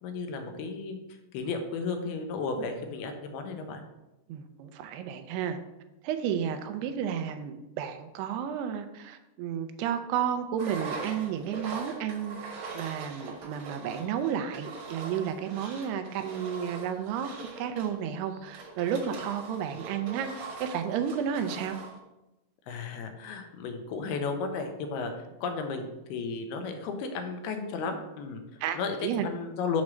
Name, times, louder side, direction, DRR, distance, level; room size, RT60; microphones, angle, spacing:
voice 1, 0.0-3.8 22.7-25.1 25.4-29.8, left 4 dB, 85° left, 5 dB, 2.6 m, -34 dB
voice 2, 4.3-5.6 6.0-12.4 12.7-17.3 17.6-21.8 28.6-29.3, right 8 dB, 85° right, 8 dB, 2.6 m, -32 dB
Engine, 10.6-22.0, right 4 dB, 65° right, 1.9 m, -42 dB
7.1 x 3.2 x 6.1 m, 0.97 s
omnidirectional pair, 4.6 m